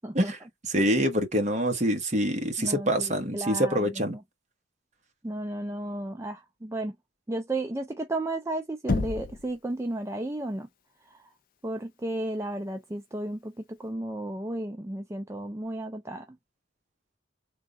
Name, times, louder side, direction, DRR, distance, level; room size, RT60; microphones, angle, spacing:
voice 1, 0.6-4.1, equal, 35° right, 1.1 m, -25 dB
voice 2, 2.6-4.2 5.2-7.0 7.3-10.7 11.1-11.3 11.6-16.4, right 1 dB, 15° right, 0.4 m, -33 dB
Knock, 8.9-9.5, left 3 dB, 45° left, 0.5 m, -28 dB
3.5 x 2.4 x 3.7 m
head